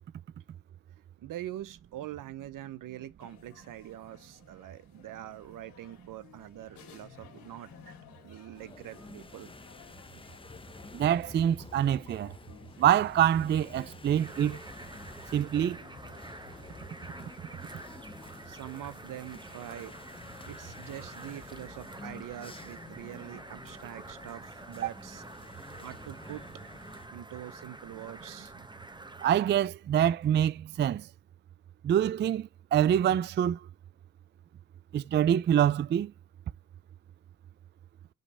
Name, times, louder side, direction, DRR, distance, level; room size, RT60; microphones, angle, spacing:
voice 1, 1.2-7.7 8.2-9.5 18.5-20.0 20.5-25.2 25.8-26.5 27.1-28.5, right 12 dB, 65° right, 0.9 m, -44 dB
sound 1, 3.2-21.4, left 7 dB, 80° left, 2.8 m, -57 dB
fez streetcorner tailor, 8.5-27.1, left 3 dB, 15° left, 0.8 m, -50 dB
voice 2, 10.9-12.3 12.8-14.6 15.3-15.8 24.8-24.9 29.2-31.1 31.8-33.7 34.9-36.1, right 10 dB, 35° right, 0.4 m, -25 dB
River Don frogs and birds, 14.1-29.3, right 2 dB, 15° right, 1.1 m, -48 dB
5.2 x 5.2 x 4.2 m
supercardioid pair, 60°, 35 cm